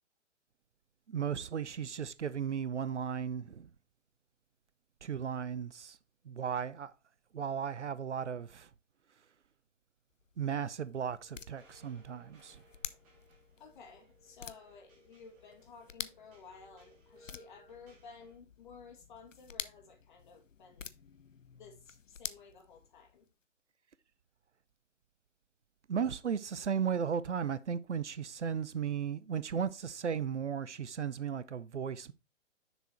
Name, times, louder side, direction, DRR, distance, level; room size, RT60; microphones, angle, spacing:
voice 1, 1.1-3.7 5.0-6.0 6.2-6.9 7.3-8.7 10.4-12.6 25.9-32.1, right 7 dB, 65° right, 0.6 m, -35 dB
sound 1, 10.1-23.3, left 6 dB, 80° left, 0.6 m, -49 dB
sound 2, 11.2-18.4, right 1 dB, 5° right, 0.5 m, -64 dB
voice 2, 13.5-20.9 21.5-23.3, left 5 dB, 40° left, 2.1 m, -54 dB
6.7 x 4.7 x 4.2 m
figure-of-eight pair, 130°, 37 cm